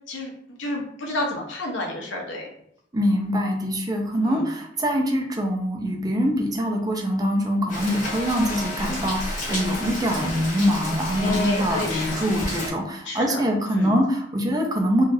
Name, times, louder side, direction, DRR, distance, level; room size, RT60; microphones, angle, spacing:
voice 1, 0.6-2.5 4.2-4.5 11.2-12.3 13.1-13.9, left 1 dB, 80° left, 0 dB, 0.8 m, -30 dB
voice 2, 2.9-15.0, equal, 20° right, 2 dB, 0.4 m, -24 dB
Rain, 7.7-12.7, left 1 dB, 45° left, 1.1 m, -31 dB
3.2 x 2.3 x 2.6 m, 0.70 s
head